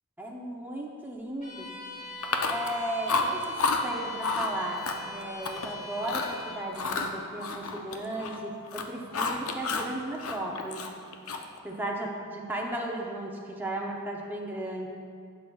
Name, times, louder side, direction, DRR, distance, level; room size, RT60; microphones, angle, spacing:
voice 1, 0.2-1.8 2.5-3.6 3.8-10.9 11.6-14.9, right 1 dB, 10° right, -2 dB, 0.6 m, -35 dB
Bowed string instrument, 1.4-6.7, right 1 dB, 35° left, 1.4 m, -41 dB
Chewing mastication, 2.2-2.8 3.1-3.8 4.2-4.5 4.8-5.7 6.0-6.3 6.7-8.4 8.6-9.9 10.2-11.6, left 4 dB, 70° left, 0.6 m, -30 dB
12.0 x 6.7 x 2.3 m, 2.2 s
head